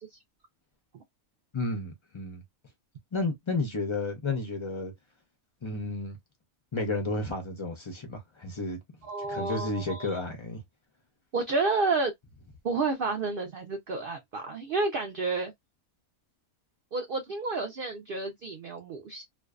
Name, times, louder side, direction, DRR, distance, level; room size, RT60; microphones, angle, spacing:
voice 1, 1.5-2.4 3.1-4.9 5.6-6.2 6.7-8.8 9.2-10.6, left 2 dB, 45° left, 0.3 m, -32 dB
voice 2, 9.1-10.2 11.3-12.1 12.6-15.5 16.9-19.2, right 3 dB, 75° right, 0.5 m, -30 dB
2.5 x 2.2 x 2.3 m
omnidirectional pair, 1.5 m